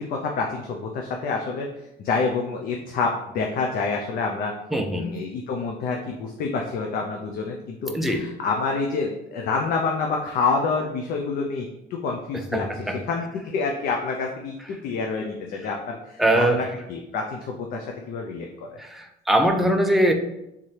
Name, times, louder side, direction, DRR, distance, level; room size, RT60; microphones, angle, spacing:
voice 1, 0.0-1.7 2.0-4.5 4.9-12.7 13.1-16.6 16.9-18.8, left 4 dB, 60° left, 2 dB, 0.5 m, -27 dB
voice 2, 4.7-5.1 7.9-8.3 12.3-13.0 16.2-16.6 18.8-20.1, right 1 dB, ahead, 4 dB, 0.4 m, -22 dB
3.6 x 3.2 x 4.3 m, 0.87 s
cardioid pair, 165°, 17 cm